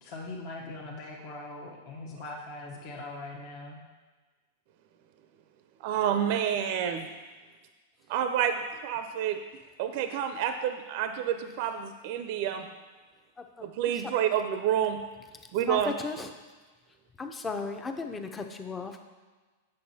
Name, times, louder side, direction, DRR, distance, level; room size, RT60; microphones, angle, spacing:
voice 1, 0.0-3.8, left 2 dB, 50° left, -1 dB, 0.9 m, -41 dB
voice 2, 5.8-7.1 8.1-9.4 9.8-12.7 13.6-15.0 15.5-15.9, right 9 dB, 55° right, 8 dB, 0.4 m, -29 dB
voice 3, 15.7-16.3 17.2-19.0, left 4 dB, 15° left, 6 dB, 0.6 m, -36 dB
7.6 x 6.4 x 2.8 m, 1.3 s
hypercardioid pair, 125°, 0 cm